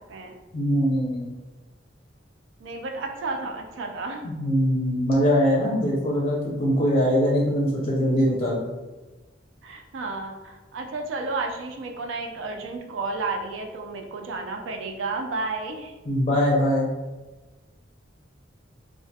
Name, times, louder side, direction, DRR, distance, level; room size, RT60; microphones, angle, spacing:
voice 1, 0.5-1.3 4.2-8.7 16.1-16.9, equal, 30° left, -3 dB, 0.4 m, -22 dB
voice 2, 2.6-4.3 9.6-15.9, right 3 dB, 85° right, 3 dB, 0.4 m, -32 dB
2.3 x 2.1 x 2.7 m, 1.2 s
head